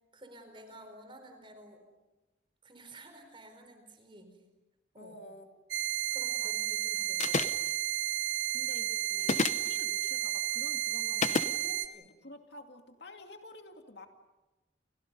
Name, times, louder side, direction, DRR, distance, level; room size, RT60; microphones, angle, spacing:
voice 1, 0.1-1.8 2.6-4.4 4.9-5.2 6.1-7.5 11.6-12.1, right 1 dB, 25° right, 7 dB, 4.5 m, -52 dB
voice 2, 5.0-5.6 6.4-6.5 7.0-7.1 8.2-11.8 12.2-14.1, left 1 dB, 65° left, 4 dB, 2.4 m, -50 dB
sound 1, 5.7-11.9, right 14 dB, 85° right, 1.1 m, -32 dB
sound 2, 7.2-7.7 9.2-9.7 11.2-11.5, left 4 dB, 40° left, 0.8 m, -29 dB
29.5 x 29.5 x 5.5 m, 1.1 s
head